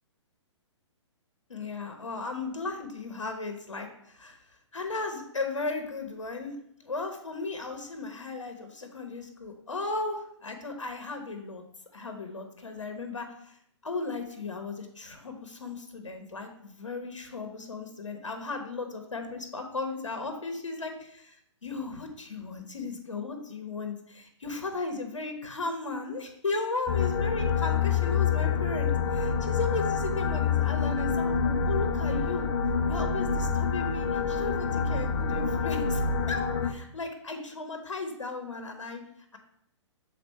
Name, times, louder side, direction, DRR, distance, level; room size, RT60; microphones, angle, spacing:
voice 1, 1.5-4.4 4.7-11.6 11.9-13.6 13.8-21.4 21.6-32.5 32.9-36.0 36.3-39.0, left 3 dB, 85° left, 5 dB, 1.1 m, -36 dB
sound 1, 26.9-36.7, left 6 dB, 50° left, 0.8 m, -27 dB
6.1 x 4.1 x 4.2 m, 0.72 s
figure-of-eight pair, 125°, 16 cm